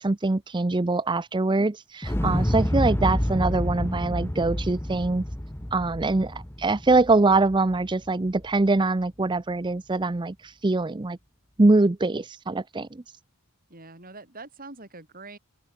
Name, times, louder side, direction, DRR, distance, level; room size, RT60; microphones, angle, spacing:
voice 1, 0.0-5.2 5.7-11.2 11.6-12.9, right 3 dB, 20° right, 0.5 m, -23 dB
Explosion, 2.0-8.1 8.4-8.5, equal, 10° left, 1.0 m, -28 dB
voice 2, 13.7-15.4, right 3 dB, 40° right, 6.8 m, -44 dB
open air
head